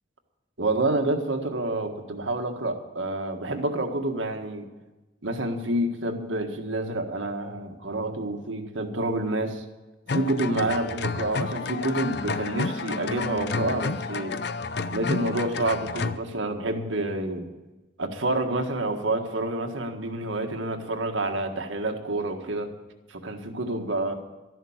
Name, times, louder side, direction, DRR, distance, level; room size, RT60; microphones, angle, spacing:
voice 1, 0.6-4.7 5.2-9.6 10.1-14.4 14.9-17.5 18.0-22.7 23.1-24.1, right 2 dB, 90° right, 4 dB, 1.7 m, -28 dB
sound 1, 10.1-16.2, left 4 dB, 55° left, 0.6 m, -30 dB
13.0 x 11.0 x 7.3 m, 1.1 s
head